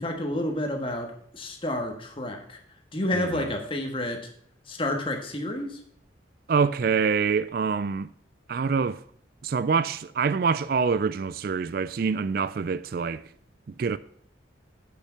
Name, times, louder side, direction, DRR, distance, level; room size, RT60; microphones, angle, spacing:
voice 1, 0.0-2.6 2.9-4.2 4.7-5.8, left 1 dB, 25° left, 1.5 m, -30 dB
voice 2, 3.1-3.5 6.5-8.1 8.5-9.0 9.4-13.2 13.7-14.0, right 5 dB, 50° right, 0.3 m, -25 dB
8.6 x 6.7 x 5.7 m
head